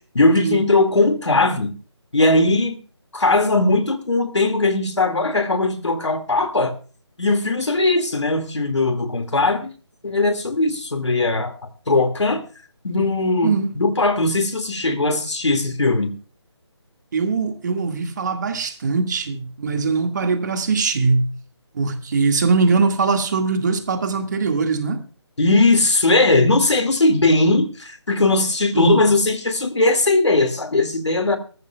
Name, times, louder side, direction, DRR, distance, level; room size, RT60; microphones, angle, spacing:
voice 1, 0.1-1.7 2.1-2.8 3.1-6.7 7.2-9.7 10.0-11.5 11.9-12.5 12.8-16.1 25.4-31.4, left 2 dB, 80° left, 2.2 m, -19 dB
voice 2, 13.4-13.8 17.1-21.3 21.7-25.0 28.7-29.0, right 4 dB, 40° right, 2.0 m, -21 dB
19.5 x 14.0 x 2.3 m
figure-of-eight pair, 160°, 15 cm